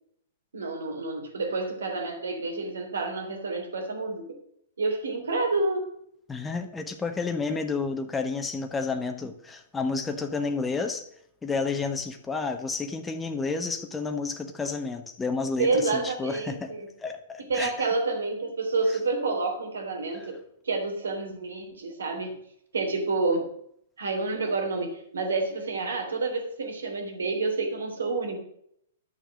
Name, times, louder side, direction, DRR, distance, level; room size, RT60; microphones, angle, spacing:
voice 1, 0.5-4.2 4.8-5.9 15.6-16.9 17.4-20.4 20.6-22.4 22.7-23.5 24.0-28.4, right 3 dB, 80° right, 3 dB, 3.3 m, -29 dB
voice 2, 6.3-11.0 11.4-16.7 17.0-17.9 20.2-20.3, left 4 dB, 10° left, 5 dB, 1.2 m, -31 dB
12.0 x 6.8 x 6.4 m, 0.72 s
hypercardioid pair, 120°, 0 cm